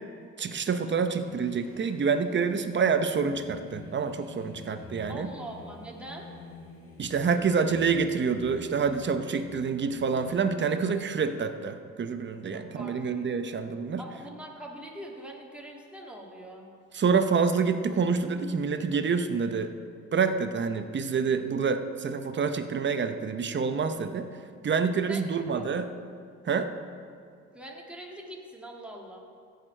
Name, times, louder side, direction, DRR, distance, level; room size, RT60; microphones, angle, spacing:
voice 1, 0.4-5.3 7.0-14.0 16.9-19.7 20.1-24.3 24.6-25.9 26.5-26.7, right 5 dB, 40° right, 9 dB, 0.7 m, -27 dB
Singing, 1.1-11.5, left 3 dB, 50° left, 2.9 m, -49 dB
voice 2, 5.1-6.3 12.5-13.3 14.0-16.7 25.1-25.7 27.5-29.2, right 1 dB, 5° right, -1 dB, 1.9 m, -43 dB
15.5 x 6.7 x 4.4 m, 2.3 s
cardioid pair, 90°, 30 cm